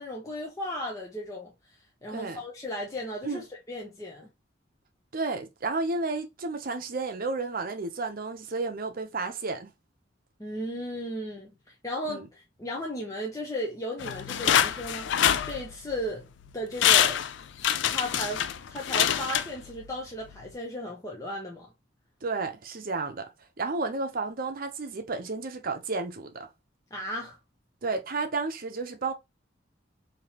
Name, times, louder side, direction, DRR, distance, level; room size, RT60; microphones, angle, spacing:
voice 1, 0.0-1.5 2.0-4.3 10.4-11.5 11.8-16.3 16.5-17.2 17.9-18.4 18.7-21.7 26.9-27.4, equal, 20° left, 0.7 m, -35 dB
voice 2, 2.1-2.4 3.2-3.4 5.1-9.7 12.1-12.3 22.2-23.3 23.6-26.5 27.8-29.1, right 3 dB, 50° right, 0.7 m, -32 dB
sound 1, 14.0-16.0 16.5-16.6 16.8-20.0 20.3-20.4, left 10 dB, 65° left, 0.3 m, -25 dB
3.5 x 2.8 x 2.9 m
head